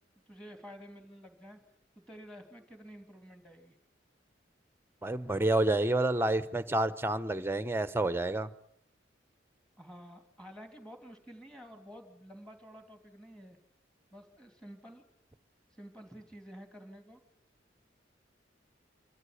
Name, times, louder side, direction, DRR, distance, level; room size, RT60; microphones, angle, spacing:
voice 1, 0.3-1.6 2.0-3.8 9.8-13.6 14.1-15.0 15.7-17.2, equal, 5° left, 6 dB, 3.0 m, -50 dB
voice 2, 5.0-8.5, right 2 dB, 15° right, 14 dB, 0.9 m, -29 dB
25.5 x 13.5 x 9.9 m, 0.74 s
head